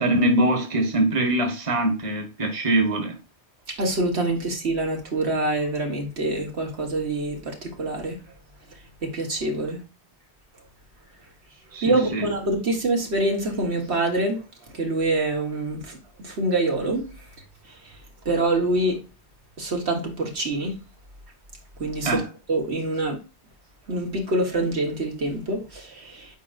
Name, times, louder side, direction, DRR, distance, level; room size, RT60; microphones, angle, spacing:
voice 1, 0.0-3.2 11.7-12.2 22.0-22.3, right 1 dB, 30° right, 1.3 m, -23 dB
voice 2, 3.8-8.2 9.0-9.8 11.8-14.4 14.8-16.0 16.2-17.1 18.3-19.0 19.6-20.8 21.8-22.2 22.5-23.2 23.9-26.3, right 2 dB, 70° right, 1.8 m, -25 dB
7.7 x 5.0 x 2.5 m
omnidirectional pair, 1.1 m